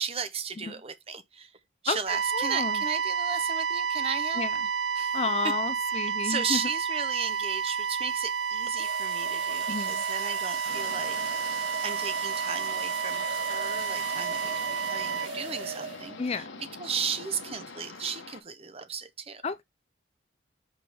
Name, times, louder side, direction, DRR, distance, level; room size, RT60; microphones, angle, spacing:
voice 1, 0.0-1.5 1.8-4.4 4.9-5.6 5.9-19.4, right 6 dB, 30° right, 0.7 m, -35 dB
sound 1, 2.1-15.3, right 6 dB, 65° right, 0.5 m, -30 dB
voice 2, 2.3-2.8 4.4-4.5 5.1-6.6 9.7-10.0 16.2-16.5 19.4-19.6, left 4 dB, 30° left, 0.4 m, -31 dB
sound 2, 5.2-5.5 7.1-16.3, right 4 dB, 90° right, 1.7 m, -39 dB
sound 3, 10.6-18.4, left 4 dB, 80° left, 1.3 m, -45 dB
5.4 x 5.1 x 3.4 m
head